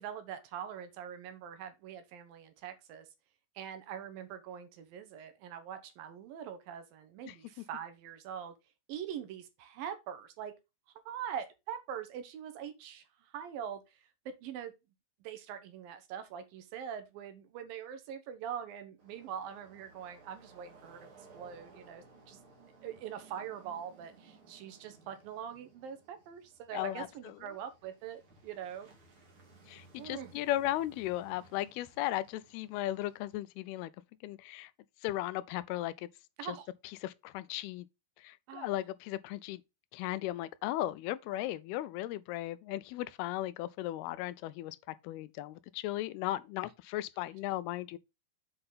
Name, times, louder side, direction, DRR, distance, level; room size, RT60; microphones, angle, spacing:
voice 1, 0.0-3.1 3.6-8.5 8.9-10.5 11.1-13.8 14.3-14.7 15.2-22.4 22.8-28.9 30.0-30.3 36.4-36.7 38.5-38.7, right 9 dB, 70° right, 2.6 m, -43 dB
sound 1, 19.0-33.4, right 3 dB, 45° right, 2.1 m, -60 dB
voice 2, 26.7-27.1 29.7-33.9 34.2-34.7 35.0-36.1 37.0-37.9 38.2-39.6 39.9-48.0, left 15 dB, 85° left, 2.6 m, -36 dB
7.8 x 5.4 x 3.9 m
omnidirectional pair, 4.5 m